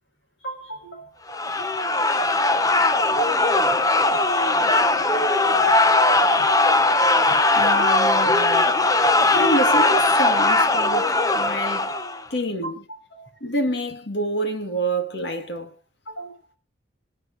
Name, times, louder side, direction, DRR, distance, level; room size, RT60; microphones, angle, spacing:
voice 1, 0.4-1.2 1.6-1.9 2.2-2.4 12.6-12.7 13.1-13.4 16.1-16.4, right 2 dB, 80° left, 7.4 m, -38 dB
sound 1, 1.3-12.2, left 2 dB, 20° left, 0.7 m, -19 dB
voice 2, 7.3-8.8 9.4-11.9 12.3-12.8 13.4-15.7, right 1 dB, 60° left, 1.8 m, -27 dB
26.5 x 9.6 x 2.7 m
head